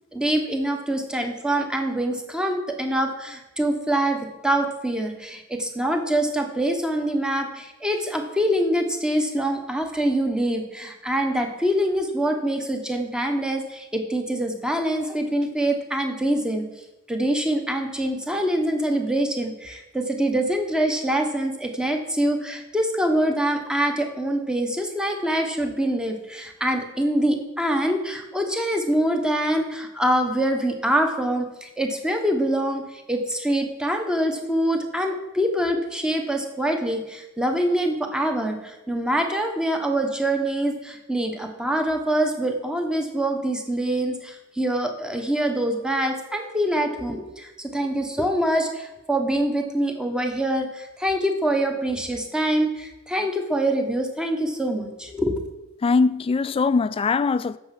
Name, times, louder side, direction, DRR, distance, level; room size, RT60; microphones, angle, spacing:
voice 1, 0.1-16.6 17.1-55.3, right 1 dB, 5° right, 1.1 m, -25 dB
voice 2, 55.8-57.6, left 4 dB, 25° left, 0.3 m, -21 dB
9.4 x 6.9 x 5.8 m
head